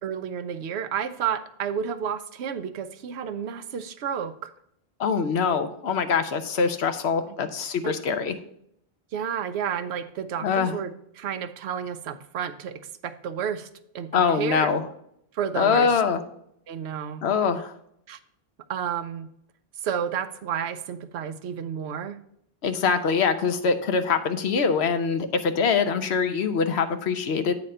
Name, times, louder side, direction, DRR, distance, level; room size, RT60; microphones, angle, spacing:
voice 1, 0.0-4.5 7.8-7.9 9.1-10.9 11.2-13.7 13.9-14.7 15.3-16.0 16.7-17.2 18.1-18.2 18.7-19.3 19.8-22.2, right 8 dB, 80° right, 11 dB, 0.9 m, -31 dB
voice 2, 5.0-8.3 10.4-10.7 14.1-14.8 15.5-16.2 17.2-17.7 22.6-27.5, left 6 dB, 75° left, 9 dB, 1.0 m, -23 dB
8.8 x 4.2 x 5.4 m, 0.73 s
omnidirectional pair, 1.1 m